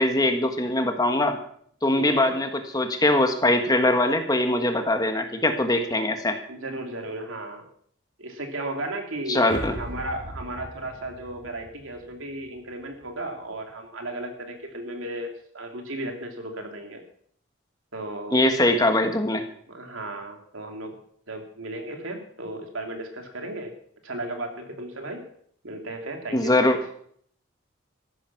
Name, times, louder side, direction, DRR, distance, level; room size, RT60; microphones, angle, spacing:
voice 1, 0.0-1.4 1.8-6.4 9.3-9.7 18.3-19.4 26.3-26.8, left 1 dB, 20° left, 6 dB, 1.5 m, -22 dB
voice 2, 1.9-2.3 6.0-6.1 6.5-7.7 8.2-17.0 17.9-18.4 19.7-20.9 21.3-23.7 24.0-25.2 25.6-26.8, right 1 dB, 85° right, 3 dB, 3.0 m, -35 dB
sound 1, 9.5-12.7 12.9-13.2, right 1 dB, 40° right, 1.4 m, -39 dB
14.0 x 11.5 x 6.0 m, 0.62 s
head